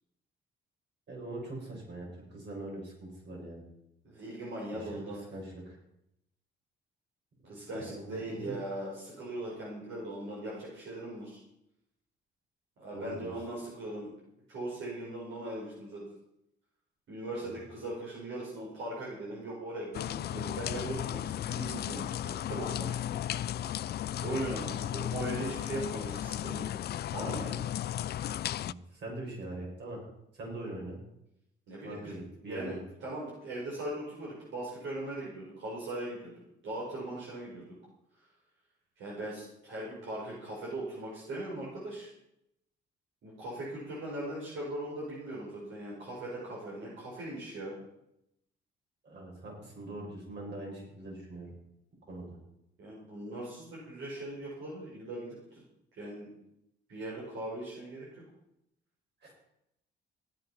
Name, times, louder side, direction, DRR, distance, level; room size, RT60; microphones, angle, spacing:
voice 1, 1.1-3.6 4.7-5.1 5.3-5.8 7.6-8.6 12.9-13.3 28.6-30.0 30.3-31.0 31.8-32.8 49.0-51.5 52.1-52.4 59.2-59.3, right 1 dB, 60° right, -1 dB, 6.9 m, -42 dB
voice 2, 4.0-5.2 7.4-11.4 12.8-14.1 14.5-16.0 17.1-23.2 24.2-26.7 27.1-27.6 31.7-32.2 32.5-36.3 36.6-37.7 39.0-42.1 43.2-47.8 52.8-55.6 55.9-56.3 56.9-58.2, right 1 dB, 75° right, -5 dB, 5.5 m, -39 dB
sound 1, 19.9-28.7, left 11 dB, 55° left, 0.4 m, -35 dB
15.5 x 10.5 x 5.9 m, 0.82 s
cardioid pair, 90°, 20 cm